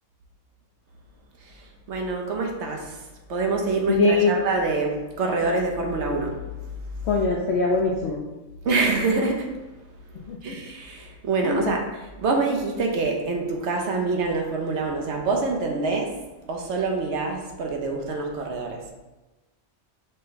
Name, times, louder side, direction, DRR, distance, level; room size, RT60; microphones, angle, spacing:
voice 1, 1.9-3.0 3.3-6.4 8.6-9.5 10.4-16.1 16.5-18.8, right 3 dB, 70° right, 2 dB, 1.0 m, -26 dB
voice 2, 3.9-4.3 7.1-8.2 10.3-10.4 11.4-11.7, left 3 dB, 65° left, -1 dB, 0.8 m, -22 dB
5.3 x 2.2 x 3.9 m, 1.1 s
omnidirectional pair, 1.2 m